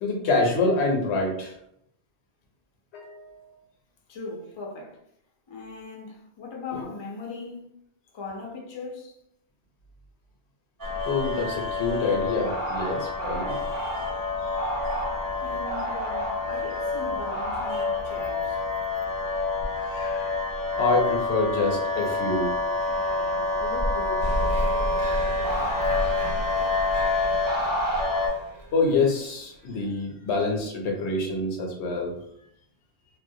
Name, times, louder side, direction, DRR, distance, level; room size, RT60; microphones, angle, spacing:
voice 1, 0.0-1.5 2.9-3.4 6.7-6.9 11.0-13.6 14.6-14.7 19.8-20.3 20.8-22.5 25.1-26.5 26.7-26.8 28.7-32.1, left 3 dB, 80° left, 0.9 m, -27 dB
voice 2, 4.1-5.0 5.5-7.7 8.1-9.2 15.4-18.7 22.8-24.4 25.0-25.1 32.2-32.3, left 4 dB, 45° left, 0.3 m, -39 dB
sound 1, 10.8-28.3, left 2 dB, 25° right, 0.5 m, -27 dB
sound 2, 24.2-29.6, right 1 dB, 85° right, 0.9 m, -34 dB
2.4 x 2.0 x 2.6 m
omnidirectional pair, 1.1 m